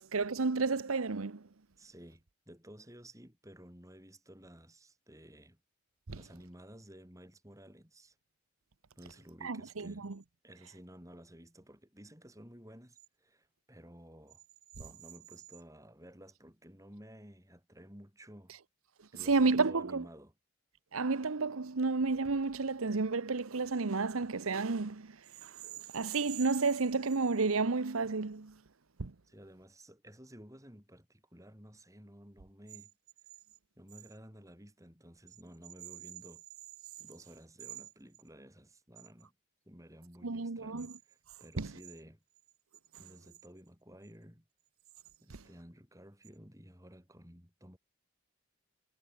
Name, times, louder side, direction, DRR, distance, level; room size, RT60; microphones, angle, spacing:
voice 1, 0.0-1.4 6.1-6.2 9.4-10.2 19.3-20.0 20.9-25.2 25.4-25.5 25.9-28.5 29.0-29.1 40.2-40.9 41.6-41.7 45.3-45.4, right 4 dB, 85° right, 0.9 m, -31 dB
voice 2, 1.8-5.6 6.1-8.2 9.0-10.1 10.4-14.4 14.8-18.6 19.1-20.3 29.2-32.9 33.8-36.4 37.0-39.3 39.7-42.2 43.0-44.4 45.2-47.8, equal, 15° right, 6.5 m, -54 dB
head